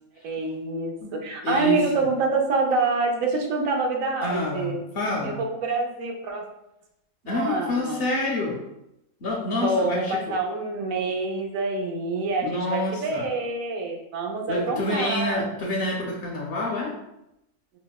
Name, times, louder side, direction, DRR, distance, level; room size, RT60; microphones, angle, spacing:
voice 1, 0.2-4.8 5.2-6.5 7.2-8.0 9.6-15.4, right 3 dB, 85° right, 2 dB, 1.0 m, -26 dB
voice 2, 1.4-2.1 4.2-5.4 7.2-8.6 9.2-10.4 12.4-13.3 14.5-16.9, left 2 dB, 60° left, -2 dB, 0.6 m, -27 dB
4.8 x 2.1 x 2.2 m, 0.86 s
omnidirectional pair, 1.4 m